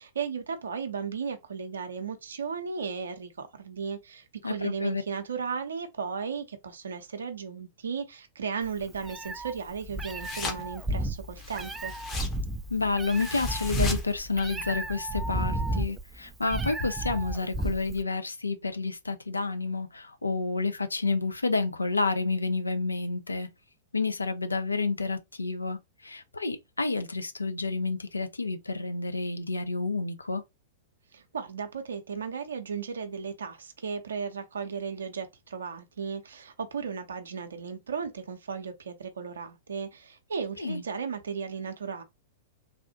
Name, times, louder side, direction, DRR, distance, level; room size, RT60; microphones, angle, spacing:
voice 1, 0.0-11.9 31.1-42.0, right 6 dB, 70° right, 0.6 m, -35 dB
voice 2, 4.4-5.0 12.7-23.5 23.9-30.4 40.6-40.8, left 3 dB, 80° left, 0.5 m, -30 dB
Meow, 8.6-18.0, right 1 dB, 10° right, 0.3 m, -32 dB
sound 1, 9.7-15.0, left 4 dB, 20° left, 0.8 m, -40 dB
3.4 x 2.4 x 2.7 m
figure-of-eight pair, 100°, 0 cm